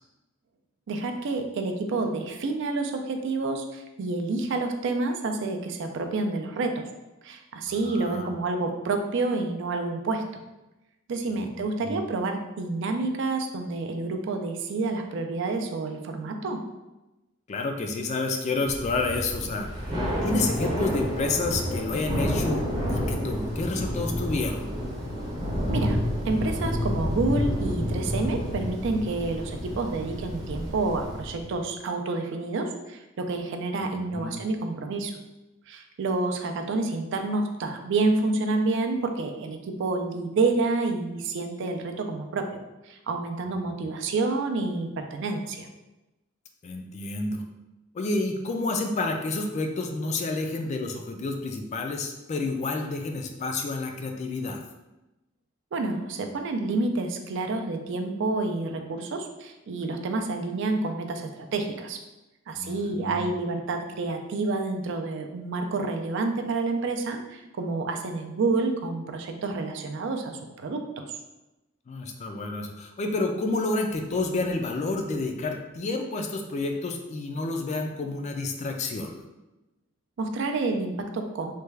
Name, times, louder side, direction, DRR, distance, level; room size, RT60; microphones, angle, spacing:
voice 1, 0.9-6.8 7.2-10.4 11.1-16.6 25.7-26.0 26.3-35.1 35.7-45.7 55.7-62.0 62.5-71.1 80.2-81.6, right 3 dB, 65° right, 5 dB, 0.4 m, -29 dB
voice 2, 7.8-8.4 11.3-12.0 17.5-19.9 20.2-22.6 22.9-24.7 33.8-34.4 43.5-43.9 46.6-47.4 47.9-54.6 62.5-63.3 71.9-79.2, left 3 dB, 35° left, 4 dB, 0.3 m, -30 dB
Thunder / Rain, 18.6-31.5, equal, 20° right, 0.7 m, -29 dB
3.3 x 2.3 x 3.2 m, 0.99 s
head